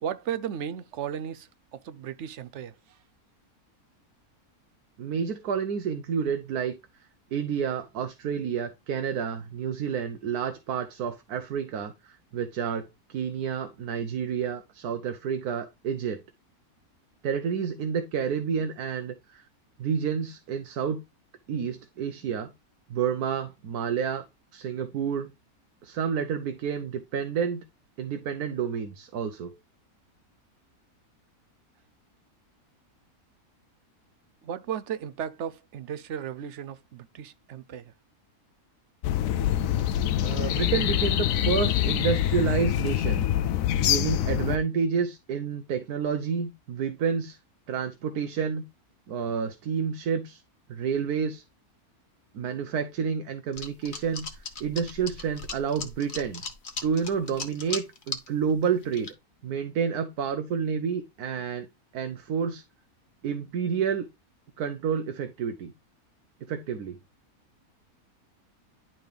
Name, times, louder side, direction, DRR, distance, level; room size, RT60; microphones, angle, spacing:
voice 1, 0.0-3.0 34.4-37.9, right 9 dB, 65° right, 0.8 m, -35 dB
voice 2, 5.0-6.7 7.3-16.2 17.2-19.4 19.8-21.0 21.5-22.5 22.9-24.2 24.5-25.3 25.8-27.6 28.0-29.5 40.2-43.3 43.8-47.4 47.7-48.6 49.1-50.4 50.7-51.4 52.3-56.4 56.8-59.1 59.4-61.7 61.9-62.6 63.2-64.0 64.6-65.7 66.5-67.0, right 7 dB, 90° right, 1.3 m, -29 dB
sound 1, 39.0-44.6, left 11 dB, 70° left, 0.9 m, -25 dB
sound 2, 53.5-58.3 58.6-59.1, left 4 dB, 35° left, 1.1 m, -37 dB
11.0 x 3.9 x 3.3 m
omnidirectional pair, 1.6 m